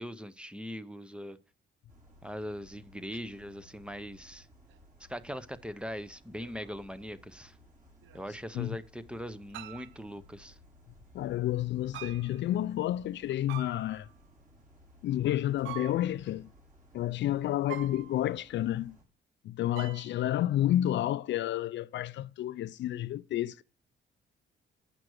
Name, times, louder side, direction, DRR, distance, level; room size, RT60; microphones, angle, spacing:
voice 1, 0.0-1.4 2.2-4.5 5.1-7.6 8.1-10.6, equal, 5° right, 0.7 m, -41 dB
sound 1, 1.9-19.0, equal, 40° right, 4.5 m, -59 dB
sound 2, 4.7-4.8 6.4-7.1 8.0-8.7 9.5-10.0 11.9-12.5 13.5-14.1 15.6-16.3 17.7-18.4 19.8-20.3, right 13 dB, 75° right, 0.5 m, -46 dB
voice 2, 11.1-14.1 15.0-16.5 16.9-19.0 19.4-23.6, left 13 dB, 65° left, 0.4 m, -30 dB
7.9 x 5.9 x 6.3 m
cardioid pair, 90°, 20 cm